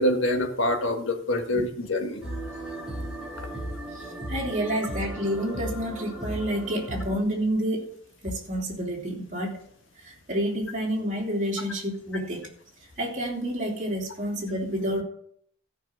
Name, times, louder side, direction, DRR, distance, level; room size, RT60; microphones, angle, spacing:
voice 1, 0.0-2.2, left 1 dB, 70° left, 5 dB, 1.6 m, -25 dB
sound 1, 2.2-7.2, right 1 dB, 5° right, 3.0 m, -36 dB
voice 2, 3.9-7.9 8.2-9.6 10.0-12.5 13.0-15.0, equal, 40° right, -1 dB, 3.0 m, -29 dB
14.0 x 5.9 x 6.3 m, 0.66 s
head